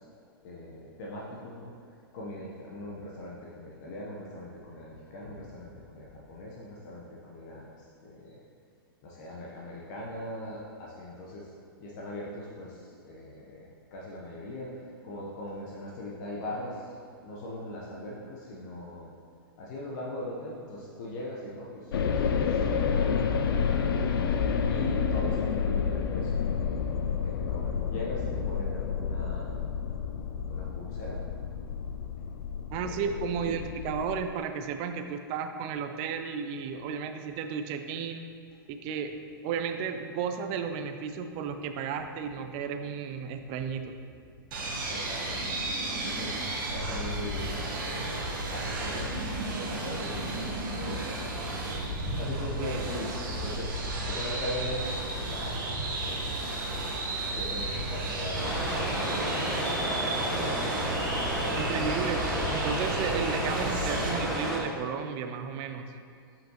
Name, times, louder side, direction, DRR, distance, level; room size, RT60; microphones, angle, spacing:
voice 1, 0.4-1.7 2.1-7.7 8.0-8.4 9.0-11.5 11.8-12.8 13.0-14.7 15.0-16.8 17.2-19.1 19.6-23.9 24.7-26.8 27.2-29.7 30.5-31.2 32.8-33.6 44.9-45.5 45.9-46.4 46.7-51.2 52.2-54.8 55.1-56.5 57.3-59.5 60.0-60.7 61.4-62.1, left 1 dB, 50° left, -4 dB, 1.0 m, -40 dB
sound 1, 21.9-34.2, left 6 dB, 70° left, 0.5 m, -29 dB
voice 2, 32.7-38.3 38.7-39.1 39.4-44.0 52.6-52.8 61.6-62.2 62.5-65.9, right 6 dB, 40° right, 7 dB, 0.5 m, -33 dB
sound 2, 44.5-64.1, right 2 dB, 60° right, 1.3 m, -33 dB
sound 3, 58.3-64.6, right 1 dB, 5° left, 1.2 m, -31 dB
7.2 x 5.8 x 3.0 m, 2.2 s
hypercardioid pair, 115°, 12 cm